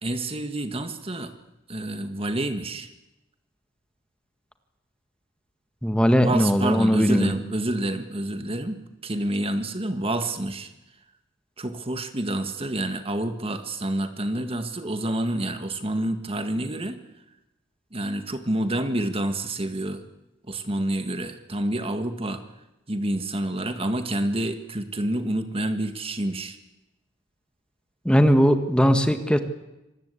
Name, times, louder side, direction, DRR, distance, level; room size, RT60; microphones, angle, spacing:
voice 1, 0.0-1.3 1.7-2.9 6.2-10.7 11.6-17.0 17.9-20.0 20.5-22.4 22.9-26.6, right 1 dB, 30° right, 8 dB, 1.8 m, -28 dB
voice 2, 5.8-7.3 28.0-29.4, equal, 5° left, 8 dB, 1.7 m, -19 dB
25.5 x 19.0 x 8.5 m, 0.95 s
head